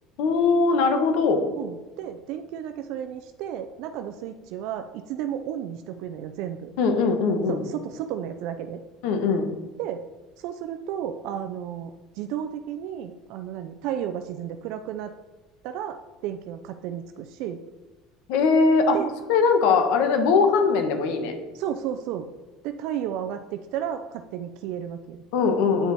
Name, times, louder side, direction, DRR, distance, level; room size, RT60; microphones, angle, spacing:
voice 1, 0.2-1.5 6.8-7.6 9.0-9.5 18.3-19.0 19.3-21.3 25.3-25.9, left 4 dB, 75° left, 6 dB, 1.2 m, -21 dB
voice 2, 1.5-6.7 7.5-8.8 9.8-10.0 10.4-15.1 15.6-16.0 16.2-17.6 18.9-19.1 21.5-22.3 22.6-25.2, right 10 dB, 65° right, 7 dB, 0.4 m, -33 dB
9.0 x 4.6 x 4.1 m, 1.2 s
cardioid pair, 140°, 0 cm